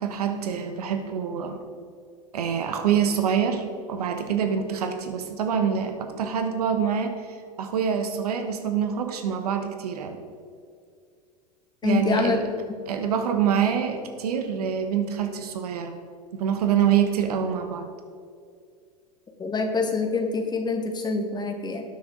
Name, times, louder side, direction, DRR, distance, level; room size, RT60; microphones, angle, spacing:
voice 1, 0.0-1.6 2.3-7.2 7.6-10.2 11.8-12.5 12.9-16.0 16.3-17.9, right 8 dB, 70° right, 7 dB, 1.2 m, -25 dB
voice 2, 11.8-12.4 19.4-21.8, left 4 dB, 20° left, 3 dB, 1.7 m, -25 dB
19.0 x 6.4 x 3.9 m, 2.3 s
hypercardioid pair, 90°, 20 cm